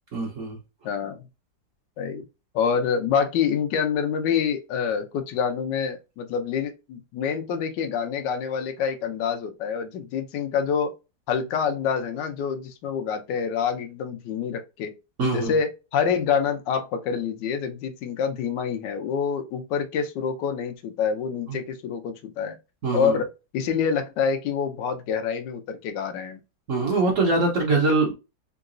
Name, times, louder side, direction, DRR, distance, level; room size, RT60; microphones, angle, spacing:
voice 1, 0.1-0.6 15.2-15.5 21.5-21.6 22.8-23.2 26.7-28.1, right 3 dB, 55° right, 1.0 m, -23 dB
voice 2, 0.8-1.2 2.0-2.2 2.5-10.9 11.3-14.9 15.3-22.5 22.9-23.3 23.5-26.4, left 7 dB, 75° left, 1.2 m, -26 dB
3.8 x 2.3 x 2.5 m
omnidirectional pair, 2.1 m